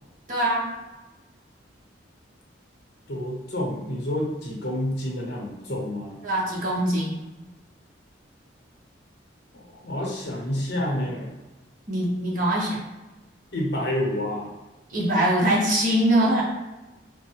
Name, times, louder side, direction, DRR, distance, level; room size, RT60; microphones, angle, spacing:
voice 1, 0.3-0.7 6.2-7.2 11.9-12.8 14.9-16.4, right 1 dB, 45° right, -5 dB, 0.9 m, -22 dB
voice 2, 3.1-6.2 9.5-11.3 13.5-14.5, left 1 dB, 60° left, -1 dB, 0.8 m, -29 dB
3.3 x 2.1 x 2.9 m, 1.1 s
head